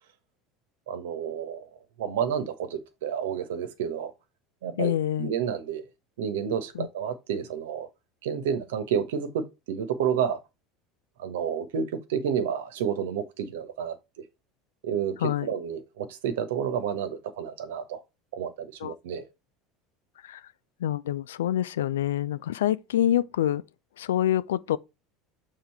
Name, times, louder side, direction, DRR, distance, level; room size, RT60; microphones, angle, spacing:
voice 1, 0.9-1.7 2.0-4.1 4.6-4.9 5.2-5.8 6.2-7.9 8.2-10.4 11.2-14.0 14.8-18.0 18.3-19.2, right 8 dB, 70° right, 1.1 m, -30 dB
voice 2, 4.8-5.3 6.7-6.9 15.2-15.5 18.8-18.9 20.2-20.4 20.8-23.6 24.0-24.8, left 11 dB, 75° left, 0.4 m, -26 dB
7.0 x 3.6 x 4.7 m
hypercardioid pair, 75°, 0 cm